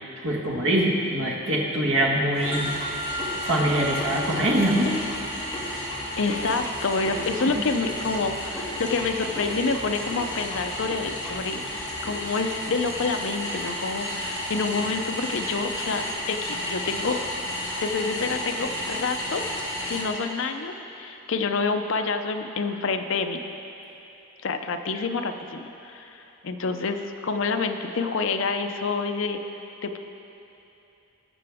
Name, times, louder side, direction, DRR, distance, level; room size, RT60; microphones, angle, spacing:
voice 1, 0.2-3.2 3.4-5.0 7.5-7.6, right 1 dB, 65° right, -2 dB, 1.6 m, -24 dB
sound 1, 2.3-20.0, left 1 dB, 15° left, 2.6 m, -32 dB
sound 2, 2.5-6.5, right 1 dB, 10° right, 2.3 m, -38 dB
voice 2, 6.2-17.2 17.8-19.5 19.9-23.4 24.4-29.4 29.8-30.0, left 4 dB, 60° left, 7 dB, 0.6 m, -28 dB
19.5 x 6.8 x 3.5 m, 2.9 s
head